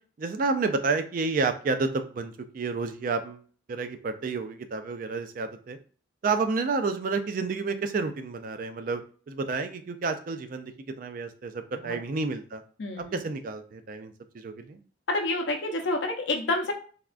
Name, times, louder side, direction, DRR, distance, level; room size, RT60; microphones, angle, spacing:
voice 1, 0.2-3.4 3.7-5.8 6.2-9.0 9.3-10.7 11.0-12.6 13.0-14.8, right 4 dB, 45° right, 9 dB, 0.3 m, -30 dB
voice 2, 12.8-13.2 15.1-16.7, left 2 dB, 70° left, 3 dB, 0.6 m, -28 dB
3.4 x 2.3 x 2.4 m, 0.42 s
head